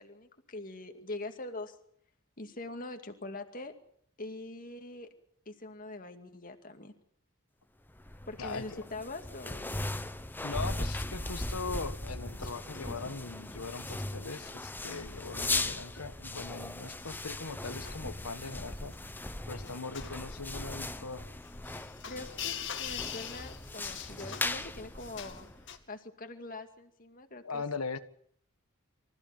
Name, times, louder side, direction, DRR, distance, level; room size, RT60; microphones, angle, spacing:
voice 1, 0.0-1.8 2.4-3.7 4.2-5.1 5.5-6.9 8.3-9.8 22.1-25.5 25.9-27.6, left 2 dB, 40° left, 6 dB, 2.2 m, -43 dB
sound 1, 7.9-25.8, left 2 dB, 10° left, 0.9 m, -38 dB
voice 2, 8.4-8.8 10.4-18.9 19.5-21.3 27.4-28.0, left 4 dB, 80° left, 11 dB, 1.6 m, -40 dB
sound 2, 11.8-25.8, left 9 dB, 55° left, 2.3 m, -46 dB
25.0 x 15.0 x 9.1 m, 0.64 s
head